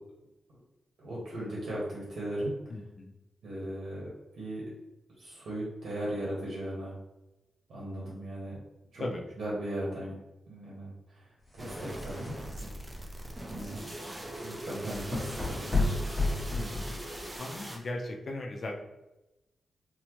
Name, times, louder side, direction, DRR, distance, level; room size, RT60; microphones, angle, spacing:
voice 1, 1.0-2.5 3.4-4.1 4.4-4.6 5.2-6.9 7.7-8.6 8.9-9.0 9.4-10.1 10.5-10.9 11.5-12.3 13.5-13.8 14.4-15.9, right 1 dB, 80° right, -6 dB, 1.2 m, -37 dB
voice 2, 2.7-3.1 9.0-9.2 16.5-17.0 17.4-18.8, left 2 dB, 45° left, 1 dB, 0.5 m, -37 dB
sound 1, 11.5-17.4, left 2 dB, 5° left, 1.0 m, -33 dB
sound 2, 11.6-17.8, right 1 dB, 15° right, 0.4 m, -41 dB
4.1 x 2.1 x 3.0 m, 0.97 s
wide cardioid pair, 145°, 0 cm